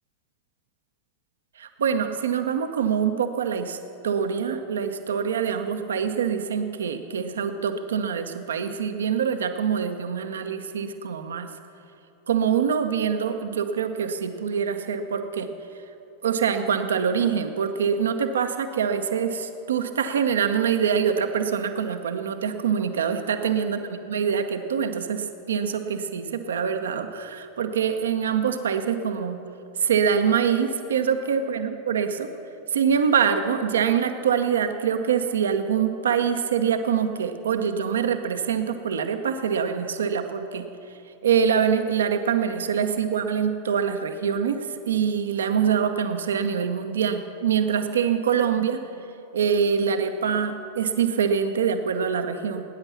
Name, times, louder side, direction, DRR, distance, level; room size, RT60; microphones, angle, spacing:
voice 1, 1.6-3.8 4.0-11.5 12.3-15.5 16.2-29.4 29.8-32.3 32.7-40.7 41.2-48.8 49.3-52.6, right 7 dB, 65° right, 7 dB, 0.9 m, -24 dB
19.0 x 9.8 x 7.2 m, 2.9 s
figure-of-eight pair, 90°, 0 cm